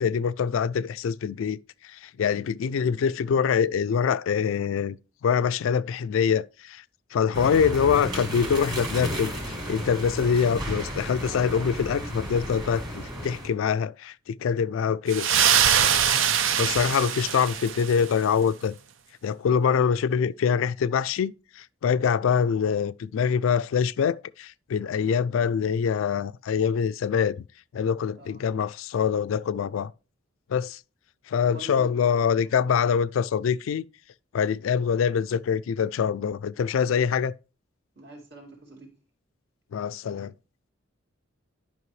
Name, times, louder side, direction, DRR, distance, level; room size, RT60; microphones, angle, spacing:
voice 1, 0.0-6.8 7.1-15.3 16.6-18.8 19.2-27.4 27.7-29.9 30.5-30.8 31.3-33.9 34.3-37.4 39.7-40.3, left 7 dB, 80° left, 0.3 m, -25 dB
sound 1, 7.3-13.5, equal, 20° right, 2.4 m, -33 dB
sound 2, 15.1-18.1, right 8 dB, 75° right, 0.6 m, -23 dB
voice 2, 31.5-31.9 32.4-32.9 38.0-38.9, right 3 dB, 55° right, 2.5 m, -46 dB
11.0 x 5.4 x 3.2 m
head